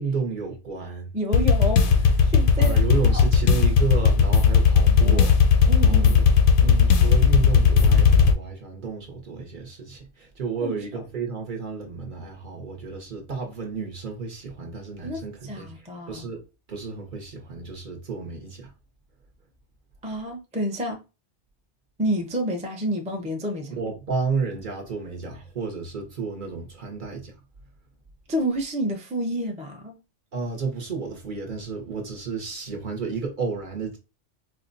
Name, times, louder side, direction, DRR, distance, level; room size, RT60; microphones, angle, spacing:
voice 1, 0.0-1.1 2.6-5.3 5.8-6.3 6.6-16.4 16.7-18.7 23.8-27.3 30.3-34.0, right 4 dB, 50° right, 0.9 m, -32 dB
voice 2, 1.1-2.8 3.1-3.2 4.9-5.2 5.7-6.1 10.6-10.8 15.0-16.3 20.0-21.0 22.0-23.7 28.3-30.0, equal, 10° right, 0.5 m, -29 dB
sound 1, 1.3-8.3, left 6 dB, 60° left, 0.6 m, -17 dB
4.3 x 2.1 x 2.5 m
omnidirectional pair, 1.2 m